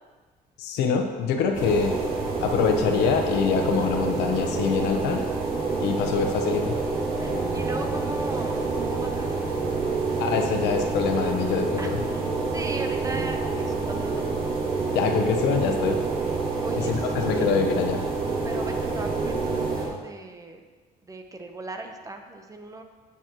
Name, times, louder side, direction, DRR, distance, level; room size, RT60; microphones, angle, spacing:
voice 1, 0.6-2.0 2.4-5.2 5.8-6.8 10.2-12.0 14.9-16.0 16.8-18.0, left 6 dB, 90° left, 4 dB, 1.0 m, -24 dB
sound 1, 1.5-19.9, right 3 dB, 60° right, 2.4 m, -27 dB
voice 2, 7.1-9.3 11.8-14.3 16.6-17.5 18.4-20.6 21.0-22.8, right 2 dB, 20° right, 5 dB, 0.9 m, -38 dB
9.0 x 8.5 x 3.0 m, 1.4 s
cardioid pair, 110°, 17 cm